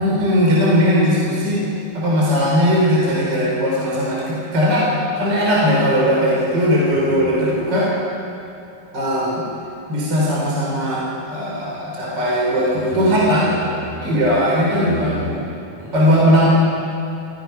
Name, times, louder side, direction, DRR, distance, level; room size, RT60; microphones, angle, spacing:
voice 1, 0.0-1.6 1.9-7.9 8.9-9.4 9.9-13.5 14.0-15.1 15.9-16.5, equal, 25° right, -5 dB, 4.2 m, -18 dB
voice 2, 12.8-13.2 13.5-14.2 14.7-16.0, equal, 45° right, -6 dB, 7.0 m, -30 dB
27.5 x 17.0 x 5.7 m, 2.8 s
omnidirectional pair, 4.7 m